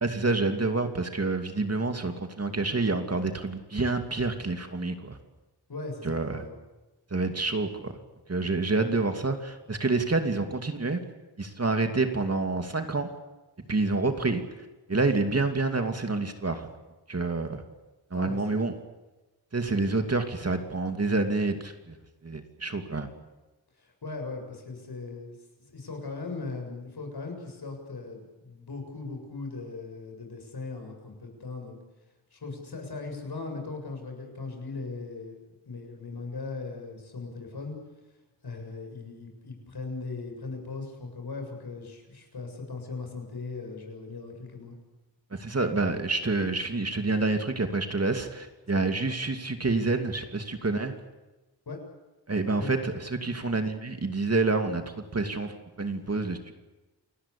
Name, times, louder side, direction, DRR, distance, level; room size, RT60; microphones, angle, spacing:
voice 1, 0.0-5.2 6.0-6.4 7.1-8.0 8.3-11.0 11.4-13.1 13.7-14.4 14.9-16.7 17.1-17.6 18.1-18.7 19.5-22.0 22.2-23.1 45.3-50.9 52.3-54.8 55.1-56.5, right 3 dB, 35° right, 6 dB, 2.7 m, -28 dB
voice 2, 5.7-6.5 18.1-18.4 23.8-25.4 25.7-31.8 32.3-35.4 35.7-37.8 38.4-44.7 48.7-48.8 51.7-51.8 52.6-52.7, left 3 dB, 65° left, 4 dB, 7.4 m, -38 dB
29.0 x 19.0 x 8.6 m, 1.1 s
wide cardioid pair, 105°, 42 cm